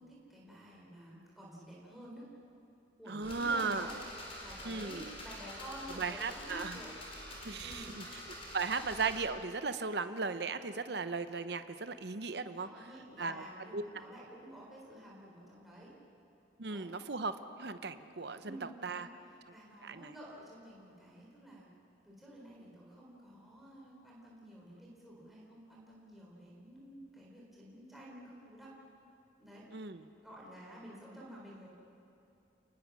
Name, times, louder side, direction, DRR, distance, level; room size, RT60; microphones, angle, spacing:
voice 1, 0.0-2.2 3.0-3.9 4.4-6.9 7.6-7.9 12.5-15.9 16.7-16.9 18.4-19.1 19.5-21.7 22.0-28.7 29.4-29.7 30.2-31.7, right 1 dB, ahead, -5 dB, 3.9 m, -51 dB
voice 2, 3.1-3.9 4.6-5.1 6.0-6.8 7.4-8.0 8.5-12.7 13.2-13.4 13.7-13.8 16.6-19.1 19.8-20.1 29.7-30.0, right 4 dB, 60° right, 10 dB, 0.9 m, -36 dB
sound 1, 3.2-9.2, left 1 dB, 30° left, 4.7 m, -47 dB
29.5 x 20.0 x 6.3 m, 2.7 s
head